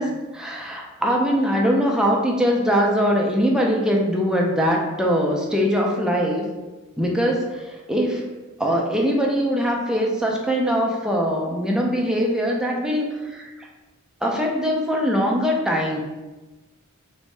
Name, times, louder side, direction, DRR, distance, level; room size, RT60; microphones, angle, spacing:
voice 1, 0.0-6.5 7.0-8.3 8.6-13.7 14.2-16.0, equal, 5° right, -1 dB, 0.4 m, -22 dB
3.1 x 2.6 x 3.2 m, 1.2 s
head